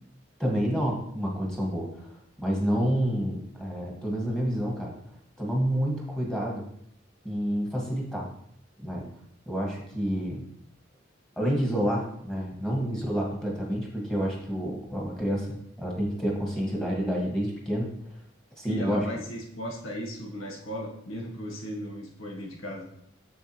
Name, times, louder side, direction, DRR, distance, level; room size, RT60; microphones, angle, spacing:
voice 1, 0.4-2.1 2.4-4.9 5.4-6.6 7.2-8.2 8.8-9.1 9.5-10.5 11.4-17.9 18.6-19.2, equal, 5° left, -2 dB, 1.5 m, -29 dB
voice 2, 18.7-22.8, equal, 80° left, 0 dB, 1.5 m, -36 dB
7.0 x 7.0 x 3.0 m, 0.70 s
head